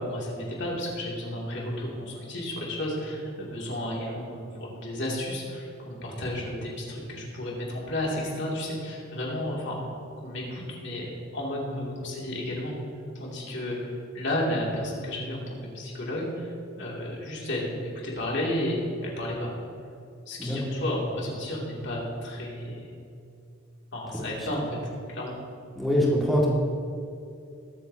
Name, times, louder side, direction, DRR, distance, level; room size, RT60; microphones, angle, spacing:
voice 1, 0.1-9.8 10.2-12.8 13.1-16.5 16.8-19.5 20.3-22.9 23.9-24.8 25.1-25.4, left 1 dB, 60° left, -3 dB, 2.6 m, -32 dB
voice 2, 25.7-26.5, equal, ahead, -6 dB, 2.0 m, -23 dB
21.0 x 7.9 x 2.8 m, 2.5 s
head